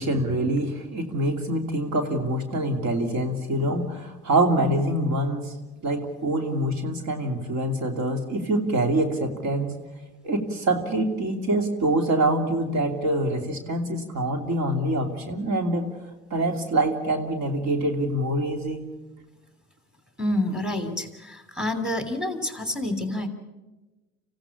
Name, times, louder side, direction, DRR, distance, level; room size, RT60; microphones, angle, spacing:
voice 1, 0.0-5.5 5.8-9.8 10.2-15.9 16.3-18.8, right 1 dB, 60° right, 6 dB, 3.0 m, -25 dB
voice 2, 20.2-23.3, left 1 dB, ahead, 8 dB, 3.1 m, -28 dB
26.5 x 16.0 x 8.5 m, 1.1 s
hypercardioid pair, 70°, 32 cm